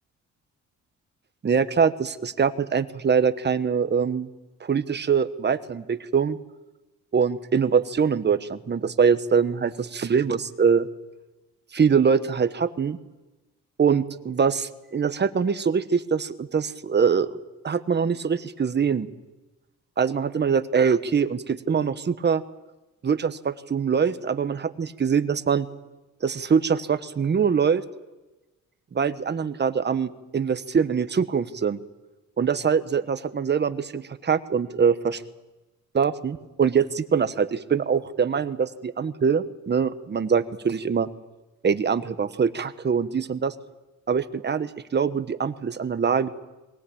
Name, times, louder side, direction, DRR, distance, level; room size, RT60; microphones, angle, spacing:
voice 1, 1.4-4.3 4.6-6.4 7.1-10.9 11.7-13.0 13.8-17.3 17.6-19.1 20.0-22.4 23.0-25.7 26.2-27.8 28.9-31.8 32.4-35.2 35.9-41.1 41.6-43.5 44.1-46.3, right 6 dB, 35° right, 11 dB, 1.3 m, -23 dB
22.5 x 18.5 x 8.7 m, 1.1 s
cardioid pair, 90°, 30 cm